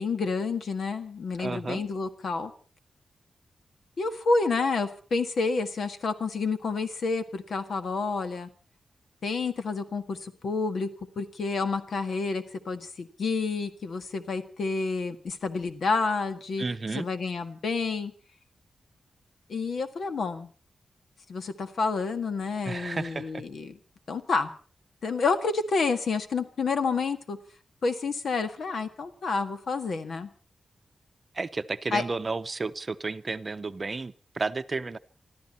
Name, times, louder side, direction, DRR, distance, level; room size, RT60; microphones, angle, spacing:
voice 1, 0.0-2.5 4.0-8.5 9.2-10.9 11.2-16.6 16.9-18.1 19.5-20.5 21.3-23.8 24.1-24.5 25.0-27.4 27.8-30.3 31.9-32.0, left 4 dB, 70° left, 9 dB, 1.7 m, -29 dB
voice 2, 1.4-1.8 16.6-17.1 22.6-23.4 31.3-35.0, right 3 dB, 35° right, 11 dB, 0.8 m, -32 dB
25.5 x 13.0 x 4.3 m, 0.40 s
wide cardioid pair, 125°, 0 cm